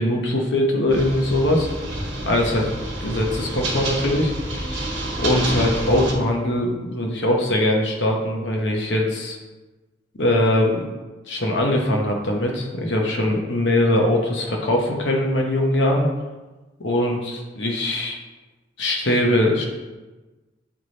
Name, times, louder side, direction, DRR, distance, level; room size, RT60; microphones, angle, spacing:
voice 1, 0.0-1.7 2.2-2.7 3.0-4.8 5.2-9.4 10.2-10.9 11.3-16.1 16.8-18.2 18.8-19.6, left 1 dB, 65° left, 0 dB, 1.0 m, -21 dB
sound 1, 0.9-6.1, right 1 dB, 60° right, 1.4 m, -28 dB
8.0 x 3.3 x 4.1 m, 1.2 s
head